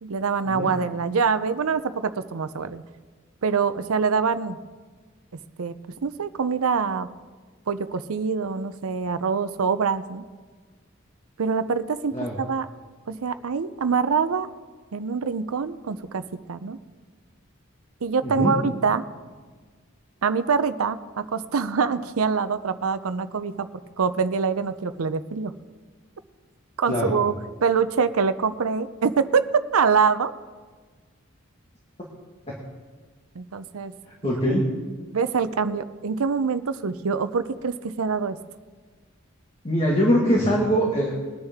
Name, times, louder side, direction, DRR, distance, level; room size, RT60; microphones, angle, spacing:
voice 1, 0.0-2.8 3.4-4.6 5.6-5.7 6.0-7.1 7.7-10.2 11.4-12.7 13.1-14.5 14.9-16.8 18.0-19.0 20.2-25.5 26.8-27.3 27.6-29.5 29.7-30.3 33.4-33.9 35.1-38.4, right 5 dB, 85° right, 12 dB, 0.6 m, -25 dB
voice 2, 18.2-18.6 26.9-27.2 32.5-32.6 34.2-34.7 39.6-41.2, equal, 30° left, -3 dB, 1.8 m, -22 dB
20.5 x 9.7 x 3.6 m, 1.4 s
head